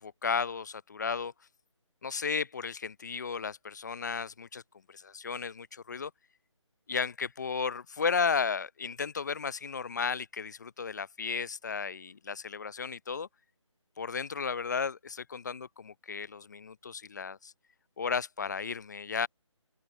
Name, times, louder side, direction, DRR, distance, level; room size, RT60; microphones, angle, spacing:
voice 1, 0.0-1.3 2.0-4.6 4.9-6.1 6.9-13.3 14.0-17.5 18.0-19.3, left 5 dB, 35° left, 0.6 m, -34 dB
open air
figure-of-eight pair, 160°, 17 cm